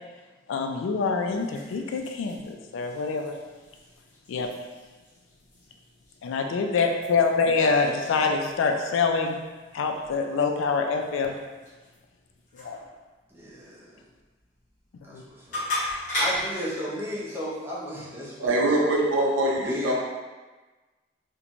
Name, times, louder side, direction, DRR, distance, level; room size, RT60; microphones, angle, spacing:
voice 1, 0.5-3.4 4.3-4.5 6.2-9.4 9.7-11.3 12.6-12.8 15.1-15.2, left 4 dB, 80° left, 4 dB, 0.3 m, -25 dB
sound 1, 1.2-16.6, left 1 dB, 40° left, 0.7 m, -38 dB
voice 2, 7.6-8.3 13.3-14.0 15.0-19.0 19.6-19.9, equal, 10° right, -6 dB, 0.5 m, -36 dB
voice 3, 18.4-19.9, right 1 dB, 80° right, -2 dB, 0.5 m, -23 dB
3.0 x 2.1 x 2.5 m, 1.3 s
head